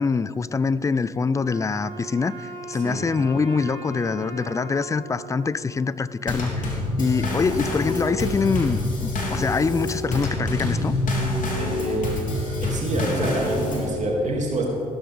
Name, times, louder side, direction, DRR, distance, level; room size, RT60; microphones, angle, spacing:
voice 1, 0.0-10.9, left 4 dB, 15° left, 18 dB, 0.4 m, -24 dB
Wind instrument woodwind instrument, 1.3-6.5, right 3 dB, 75° right, 2.7 m, -40 dB
Drum kit / Snare drum / Bass drum, 6.3-14.0, left 2 dB, 45° left, 3.4 m, -26 dB
voice 2, 11.6-12.0 12.6-14.7, right 1 dB, 40° right, -2 dB, 2.7 m, -26 dB
15.5 x 13.0 x 3.6 m, 3.0 s
hypercardioid pair, 50°, 18 cm